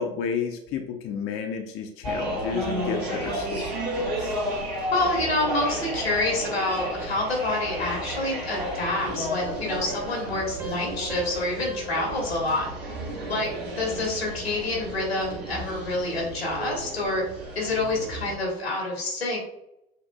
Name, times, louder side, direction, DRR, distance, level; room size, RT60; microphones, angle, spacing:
voice 1, 0.0-3.6, left 6 dB, 45° left, 4 dB, 0.6 m, -31 dB
sound 1, 2.0-18.3, equal, 80° right, 1.4 m, -32 dB
voice 2, 4.9-12.7 13.3-17.2 17.5-19.4, left 2 dB, 90° left, -2 dB, 1.4 m, -27 dB
sound 2, 10.6-13.9, right 2 dB, 5° right, 0.6 m, -40 dB
6.4 x 2.6 x 2.2 m, 0.85 s
figure-of-eight pair, 70°, 31 cm